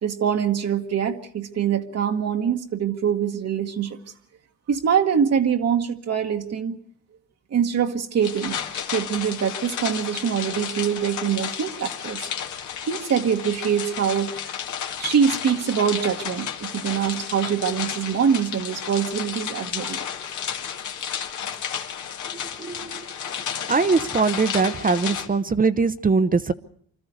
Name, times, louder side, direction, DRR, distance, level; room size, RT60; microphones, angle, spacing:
voice 1, 0.0-4.0 4.7-6.8 7.5-8.6 8.9-12.3 12.9-14.6 15.0-20.0, right 8 dB, 55° right, 4 dB, 1.4 m, -24 dB
sound 1, 8.2-25.3, left 8 dB, 75° left, 2.0 m, -32 dB
voice 2, 22.6-22.9 23.7-26.5, right 4 dB, 30° right, 11 dB, 0.8 m, -21 dB
25.0 x 13.0 x 8.1 m, 0.63 s
cardioid pair, 90°, 30 cm